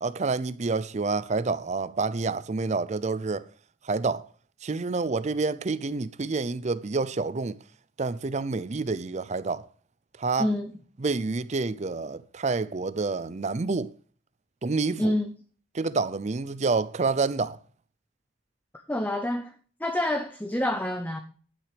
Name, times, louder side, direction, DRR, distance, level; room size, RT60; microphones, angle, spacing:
voice 1, 0.0-3.4 3.8-4.2 4.6-7.6 8.0-9.6 10.2-10.5 11.0-13.9 14.6-15.1 15.7-17.6, right 3 dB, 35° right, 0.5 m, -28 dB
voice 2, 10.4-10.7 15.0-15.3 18.9-19.5 19.8-21.2, left 1 dB, 10° left, 0.6 m, -27 dB
11.5 x 6.0 x 5.0 m
head